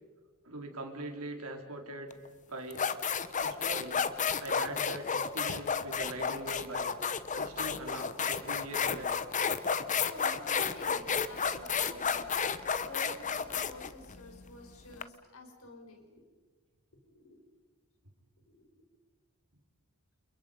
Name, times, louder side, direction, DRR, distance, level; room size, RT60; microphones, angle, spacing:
voice 1, 0.4-2.1 2.5-2.9 3.4-4.1 4.4-7.0 7.3-9.1, right 1 dB, 90° right, 3 dB, 4.5 m, -42 dB
sound 1, 2.1-2.3 2.7-15.0, left 6 dB, 35° left, 1.0 m, -32 dB
voice 2, 10.0-12.6 12.9-16.2 17.0-17.4 18.5-18.8, left 2 dB, 75° left, 3 dB, 5.5 m, -50 dB
30.0 x 29.0 x 5.5 m, 1.4 s
head